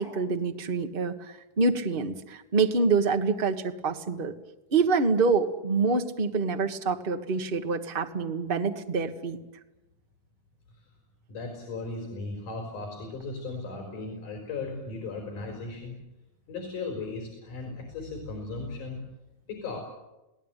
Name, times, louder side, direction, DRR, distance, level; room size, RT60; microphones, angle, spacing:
voice 1, 0.0-4.3 4.7-9.4, right 4 dB, 30° right, 6 dB, 1.0 m, -26 dB
voice 2, 11.3-16.0 16.5-19.0 19.5-19.8, left 3 dB, 85° left, 2 dB, 6.1 m, -36 dB
28.5 x 18.5 x 9.2 m, 0.98 s
omnidirectional pair, 3.5 m